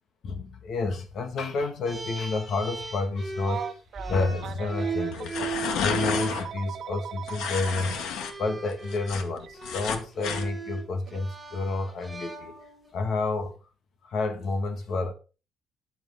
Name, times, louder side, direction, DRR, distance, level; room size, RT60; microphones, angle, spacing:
voice 1, 0.2-3.6 4.0-5.4 5.8-7.9 8.4-12.5 12.9-13.5 14.0-15.1, left 3 dB, 50° left, 1.8 m, -30 dB
sound 1, 1.8-6.4 7.4-7.6 8.1-12.9, right 4 dB, 10° right, 6.2 m, -37 dB
Telephone, 3.4-5.3 6.1-8.0 9.4-9.5 11.1-11.3, right 8 dB, 50° right, 1.2 m, -38 dB
sound 2, 5.1-6.5 7.3-8.3 8.7-10.5, left 7 dB, 85° left, 2.0 m, -31 dB
14.0 x 10.5 x 3.7 m
cardioid pair, 160°, 0 cm